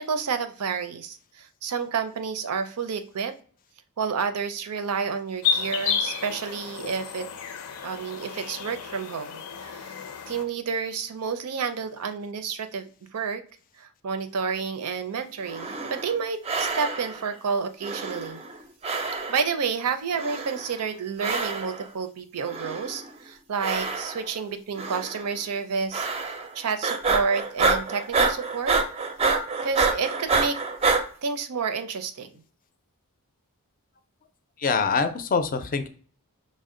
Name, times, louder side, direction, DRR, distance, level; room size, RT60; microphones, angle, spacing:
voice 1, 0.0-3.3 4.0-7.3 7.8-13.4 13.8-18.4 19.3-28.8 29.6-30.6 31.2-32.4, right 5 dB, 80° right, 9 dB, 0.5 m, -30 dB
sound 1, 5.4-10.4, left 7 dB, 85° left, 0.6 m, -31 dB
sound 2, 15.4-16.2 16.4-17.3 17.8-18.6 18.8-19.6 20.1-20.8 21.2-21.9 22.4-23.1 23.6-24.4 24.8-25.2 25.9-26.5 26.8-31.0, right 4 dB, 30° right, 0.5 m, -27 dB
voice 2, 34.6-35.9, left 5 dB, 40° left, 9 dB, 0.4 m, -24 dB
5.2 x 2.1 x 3.7 m, 0.44 s
head